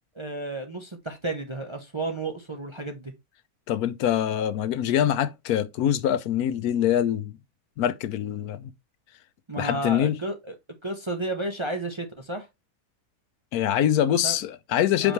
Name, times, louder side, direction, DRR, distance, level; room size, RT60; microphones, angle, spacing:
voice 1, 0.1-3.1 9.5-10.6 10.8-12.5 14.2-14.4 15.0-15.1, right 2 dB, 25° right, 0.6 m, -32 dB
voice 2, 3.7-7.3 7.8-8.7 9.6-10.2 13.5-15.1, left 10 dB, 85° left, 1.1 m, -24 dB
6.0 x 5.1 x 3.2 m
omnidirectional pair, 1.6 m